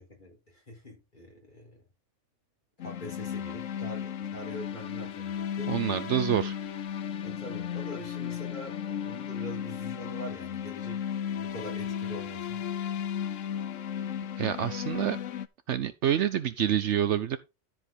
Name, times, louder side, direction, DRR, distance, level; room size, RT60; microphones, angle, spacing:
voice 1, 0.0-1.8 2.8-5.7 7.2-11.0 11.2-12.6, equal, 40° left, 4.4 m, -43 dB
sound 1, 2.8-15.5, left 9 dB, 75° left, 1.1 m, -35 dB
voice 2, 5.7-6.6 14.4-15.2 15.7-17.4, right 10 dB, 70° right, 0.9 m, -27 dB
13.0 x 5.2 x 4.0 m
omnidirectional pair, 1.3 m